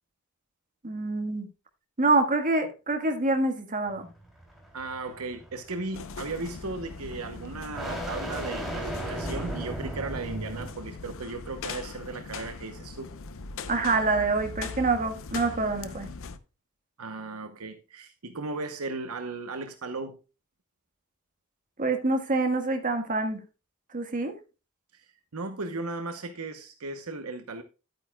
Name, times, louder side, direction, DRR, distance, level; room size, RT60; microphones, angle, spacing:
voice 1, 0.8-1.5 2.0-4.1 13.7-16.1 21.8-23.4 23.9-24.4, right 3 dB, 40° right, 1.5 m, -26 dB
sound 1, 3.9-10.9, right 1 dB, ahead, 3.0 m, -37 dB
voice 2, 4.7-13.1 17.0-20.2 25.3-27.6, right 3 dB, 70° right, 0.9 m, -36 dB
sound 2, 5.9-16.4, left 4 dB, 65° left, 0.7 m, -40 dB
11.5 x 9.0 x 2.3 m
head